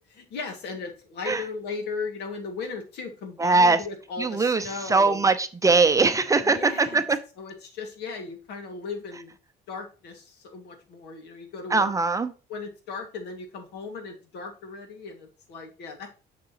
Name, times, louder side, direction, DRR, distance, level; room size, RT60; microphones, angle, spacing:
voice 1, 0.0-5.2 6.4-7.0 7.4-9.3 9.7-11.9 12.5-16.2, left 4 dB, 80° left, 5 dB, 2.0 m, -37 dB
voice 2, 3.4-3.8 4.2-7.2 11.7-12.3, right 3 dB, 20° right, 10 dB, 0.6 m, -21 dB
6.6 x 6.6 x 2.9 m, 0.33 s
cardioid pair, 110°, 17 cm